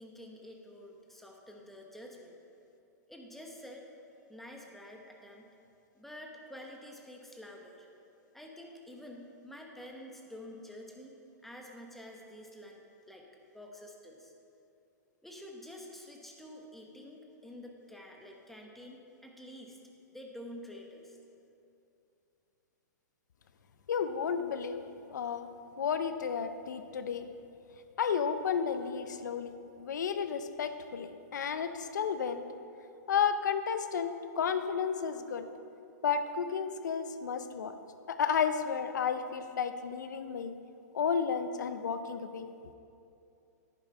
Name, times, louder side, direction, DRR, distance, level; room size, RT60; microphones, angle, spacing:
voice 1, 0.0-2.4 3.1-3.8 4.3-5.5 5.9-7.9 8.3-11.1 11.4-13.2 13.5-14.3 15.2-19.8 20.1-21.2, left 1 dB, ahead, 0 dB, 1.2 m, -48 dB
voice 2, 23.9-24.8 25.1-25.5 25.8-27.3 28.0-29.5 29.8-32.4 33.1-35.5 36.0-37.8 38.1-40.6 40.9-42.5, left 7 dB, 80° left, 10 dB, 0.7 m, -32 dB
10.5 x 9.9 x 4.3 m, 2.7 s
hypercardioid pair, 130°, 10 cm